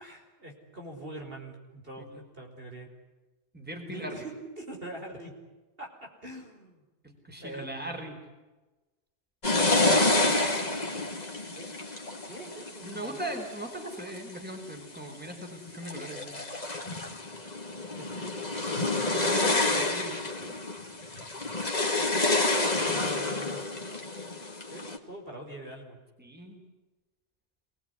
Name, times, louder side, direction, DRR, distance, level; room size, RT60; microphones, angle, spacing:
voice 1, 0.0-2.9 3.8-5.3 5.8-5.9 6.2-6.8 7.4-8.0 10.0-10.4 11.5-11.7 12.3-13.4 17.9-18.5 22.9-23.7 24.7-26.0, right 1 dB, 55° right, 1 dB, 5.4 m, -43 dB
voice 2, 3.5-4.2 7.0-8.2 11.0-11.1 12.8-16.4 19.1-20.6 26.2-26.6, right 1 dB, 10° right, 2 dB, 4.5 m, -39 dB
sound 1, 9.4-14.2 14.8-15.3 15.7-25.0, left 2 dB, 40° left, 2.5 m, -29 dB
27.0 x 20.5 x 9.8 m, 1.2 s
omnidirectional pair, 1.1 m